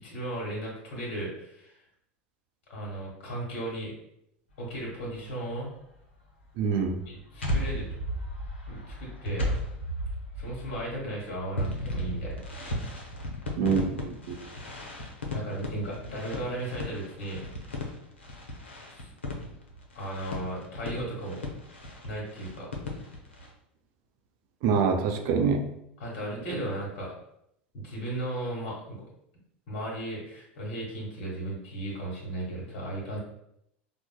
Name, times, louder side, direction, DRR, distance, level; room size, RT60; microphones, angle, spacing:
voice 1, 0.0-1.8 2.7-3.9 4.6-5.7 7.1-7.9 8.7-9.6 10.4-12.5 15.3-17.4 19.0-19.1 19.9-21.4 22.0-22.7 26.0-27.1 27.7-29.0 29.7-33.2, right 1 dB, 60° left, -3 dB, 1.2 m, -35 dB
sound 1, 4.8-5.3 6.6-23.5, equal, 90° left, 0.6 m, -35 dB
voice 2, 6.6-7.0 13.6-14.4 24.6-25.7, right 5 dB, 55° right, 5 dB, 0.5 m, -25 dB
4.6 x 2.0 x 2.2 m, 0.76 s
hypercardioid pair, 85°, 6 cm